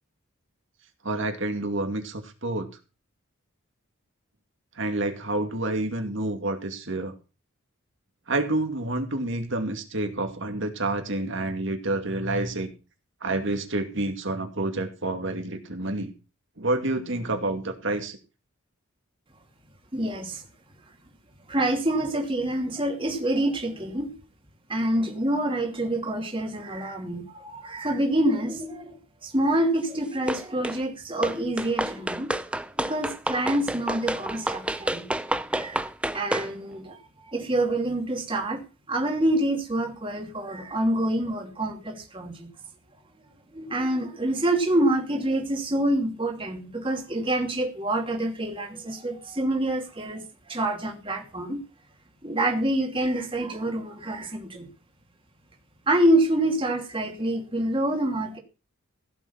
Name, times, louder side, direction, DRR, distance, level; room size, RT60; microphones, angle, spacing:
voice 1, 1.0-2.7 4.8-7.1 8.3-12.7 13.2-16.1 16.6-18.2, right 2 dB, 60° right, 5 dB, 2.5 m, -28 dB
voice 2, 19.9-20.4 21.5-24.1 24.7-32.3 32.8-35.1 35.5-35.8 36.1-37.0 37.3-38.6 38.9-42.5 43.5-50.2 50.5-51.6 52.2-54.7 55.9-58.4, right 1 dB, 25° right, 2 dB, 2.7 m, -26 dB
sound 1, 30.3-30.8 31.2-36.5, right 1 dB, 5° right, 0.6 m, -29 dB
16.0 x 7.3 x 5.7 m, 0.33 s
head